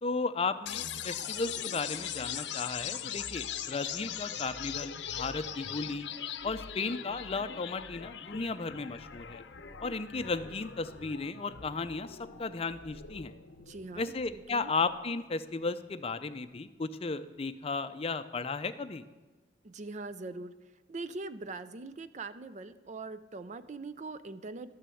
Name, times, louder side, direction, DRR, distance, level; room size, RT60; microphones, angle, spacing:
voice 1, 0.0-6.1 6.4-9.4 9.8-13.3 14.0-19.0, left 4 dB, 35° left, 11 dB, 0.5 m, -35 dB
sound 1, 0.7-14.6, left 9 dB, 70° left, 0.7 m, -41 dB
voice 2, 13.6-14.1 14.5-14.7 19.6-20.5 20.9-24.8, right 3 dB, 40° right, 13 dB, 0.5 m, -42 dB
12.0 x 6.7 x 7.7 m, 1.2 s
head